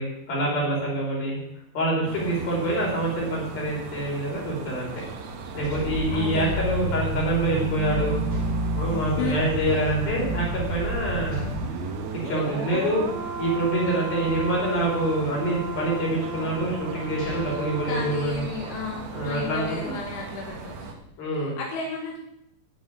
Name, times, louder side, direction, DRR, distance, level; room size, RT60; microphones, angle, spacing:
voice 1, 0.0-1.4 1.7-5.0 5.5-8.2 8.8-11.5 12.2-13.0 13.4-18.5 19.1-19.9 21.2-21.6, right 1 dB, 55° left, -3 dB, 6.9 m, -26 dB
sound 1, 2.1-20.9, right 5 dB, 65° right, 3.3 m, -39 dB
sound 2, 5.0-7.8 8.3-10.2 10.6-10.7 11.3-13.7 14.2-15.8 16.5-16.6 17.0-18.8, left 2 dB, 30° left, 2.3 m, -42 dB
sound 3, 5.4-20.3 20.6-20.8, right 1 dB, 85° right, 4.2 m, -32 dB
voice 2, 6.1-6.5 8.8-9.7 17.8-20.9 21.4-22.2, left 4 dB, 85° left, -2 dB, 4.6 m, -33 dB
13.0 x 6.4 x 9.7 m, 0.77 s
omnidirectional pair, 5.1 m